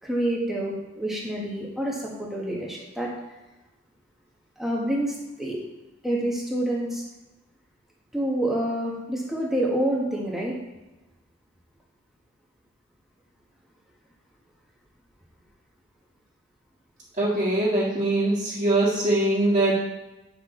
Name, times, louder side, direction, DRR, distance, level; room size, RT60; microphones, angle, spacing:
voice 1, 0.0-3.1 4.6-5.6 6.0-7.0 8.1-10.5, right 1 dB, ahead, -3 dB, 1.4 m, -27 dB
voice 2, 17.2-19.7, right 2 dB, 35° right, -11 dB, 1.9 m, -22 dB
9.3 x 6.0 x 3.8 m, 1.1 s
head